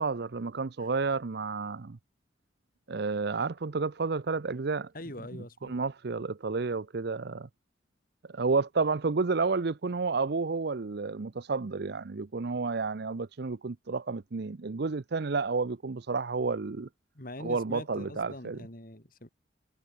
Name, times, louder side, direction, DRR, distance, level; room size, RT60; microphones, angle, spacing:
voice 1, 0.0-2.0 2.9-4.9 5.6-7.5 8.3-16.9 17.4-18.6, right 4 dB, 55° right, 0.6 m, -31 dB
voice 2, 4.9-5.8 17.1-19.3, left 1 dB, 45° left, 3.9 m, -43 dB
head